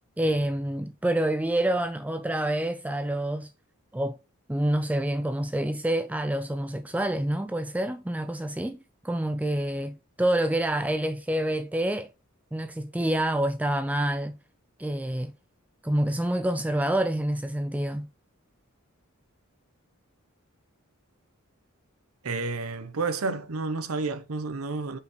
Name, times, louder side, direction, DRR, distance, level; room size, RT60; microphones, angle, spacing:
voice 1, 0.2-3.5 3.9-4.2 4.5-8.8 9.0-12.1 12.5-14.4 14.8-15.3 15.8-18.1, right 1 dB, 5° right, 0.3 m, -27 dB
voice 2, 22.2-25.0, right 3 dB, 85° right, 0.8 m, -30 dB
6.5 x 5.6 x 3.0 m
head